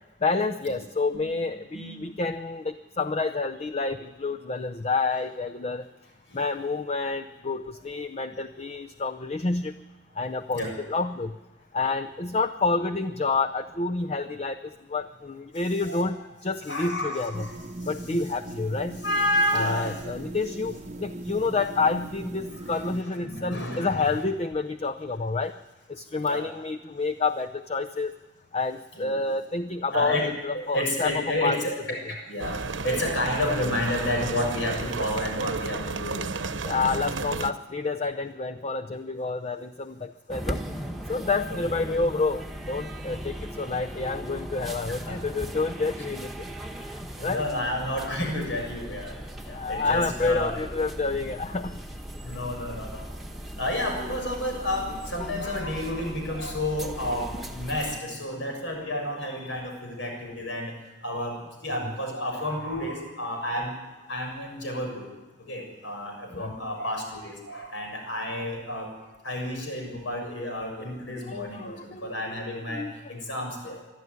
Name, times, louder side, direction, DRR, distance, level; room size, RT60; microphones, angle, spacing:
voice 1, 0.2-5.8 6.3-9.7 10.2-11.3 11.7-14.6 14.9-16.2 16.4-17.5 17.9-19.0 19.5-25.5 25.9-28.1 28.5-30.2 30.4-31.1 31.4-31.6 36.6-40.6 41.1-46.5 47.2-47.4 49.5-51.7 66.3-66.5 71.3-72.1 72.5-72.9, left 3 dB, 35° left, 9 dB, 0.6 m, -28 dB
voice 2, 1.7-2.1 10.5-10.7 15.8-16.1 16.7-17.5 19.0-20.0 22.5-24.2 26.3-26.4 28.9-29.3 29.9-30.3 30.7-32.6 32.8-36.2 41.5-42.1 44.9-45.1 47.2-49.1 49.5-50.6 52.2-53.1 53.6-60.7 61.0-61.4 61.6-63.7 64.1-65.1 65.5-68.9 69.2-71.8 72.0-72.8 73.1-73.9, left 1 dB, 75° left, 2 dB, 6.8 m, -31 dB
sound 1, 17.3-23.0, right 1 dB, 35° right, 0.8 m, -39 dB
sound 2, 32.4-37.5, right 3 dB, 75° right, 1.0 m, -32 dB
sound 3, 40.3-58.0, equal, ahead, 1.5 m, -38 dB
23.0 x 12.5 x 9.5 m, 1.1 s
head